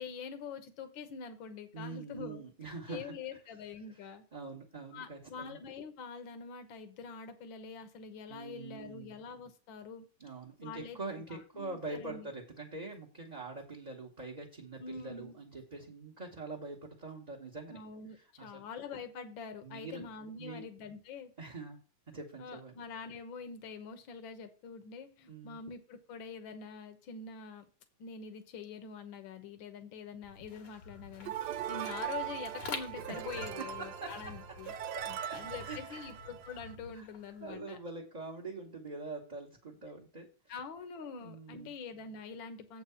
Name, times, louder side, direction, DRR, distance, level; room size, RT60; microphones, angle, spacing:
voice 1, 0.0-2.5 2.9-4.3 4.9-10.1 10.6-12.3 14.8-15.4 17.7-21.3 22.4-27.7 28.0-34.7 35.0-37.8 40.5-42.8, left 5 dB, 70° left, 8 dB, 1.8 m, -45 dB
voice 2, 1.7-3.1 4.3-5.6 8.3-9.1 10.2-17.8 18.4-18.7 19.6-20.0 20.4-20.6 21.4-21.8 22.1-22.7 25.3-25.6 33.1-33.2 33.8-34.1 35.0-35.4 35.6-36.1 36.9-37.1 37.4-40.5 41.1-41.7, right 3 dB, 25° right, 1 dB, 1.1 m, -44 dB
sound 1, 30.2-37.5, left 4 dB, 85° left, 2.5 m, -48 dB
sound 2, 31.3-36.8, right 10 dB, 65° right, 1.1 m, -40 dB
7.8 x 4.7 x 6.9 m, 0.37 s
omnidirectional pair, 2.3 m